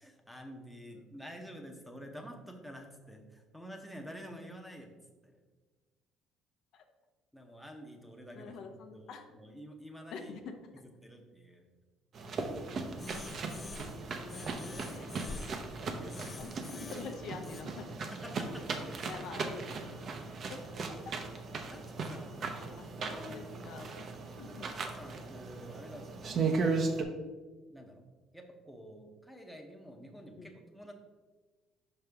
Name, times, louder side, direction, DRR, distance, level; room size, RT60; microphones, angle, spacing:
voice 1, 0.0-5.0 5.2-5.3 7.3-10.3 11.0-11.6 13.1-13.2 15.5-16.6 18.1-18.8 20.2-20.3 20.8-20.9 21.7-23.9 24.6-26.8 27.7-28.1 28.3-30.9, equal, ahead, 3 dB, 0.8 m, -49 dB
voice 2, 8.3-9.2 10.1-10.9 14.1-15.1 16.3-18.0 19.0-20.2 20.5-20.6 21.0-21.2 22.1-24.0 24.3-24.7 30.4-30.5, left 5 dB, 65° left, 5 dB, 0.7 m, -47 dB
sound 1, 12.1-27.0, right 4 dB, 45° right, 0.7 m, -37 dB
sound 2, 13.0-14.0 14.3-15.6 16.1-17.6, left 4 dB, 25° left, 0.4 m, -46 dB
5.5 x 5.3 x 3.4 m, 1.3 s
cardioid pair, 115°, 0 cm